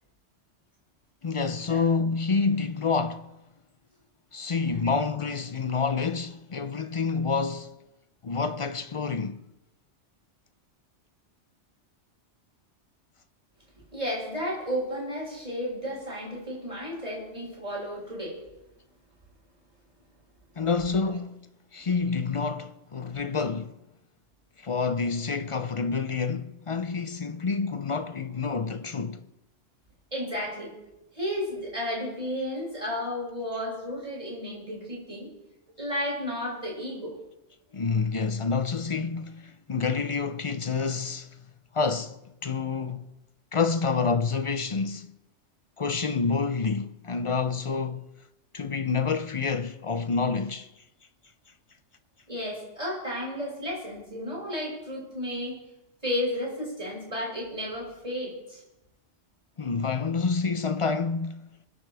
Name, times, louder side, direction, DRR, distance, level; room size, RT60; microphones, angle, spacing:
voice 1, 1.2-3.3 4.3-7.8 8.2-9.4 20.6-21.4 21.7-23.8 24.6-29.3 37.7-41.4 41.7-43.1 43.5-45.1 45.8-48.2 48.5-50.7 59.6-61.4, left 5 dB, 45° left, 0.4 m, -28 dB
voice 2, 13.9-18.4 30.1-30.7 31.1-35.3 35.8-37.1 52.3-55.5 56.0-58.6, equal, 30° right, 6.4 m, -33 dB
27.0 x 9.5 x 3.4 m
omnidirectional pair, 1.2 m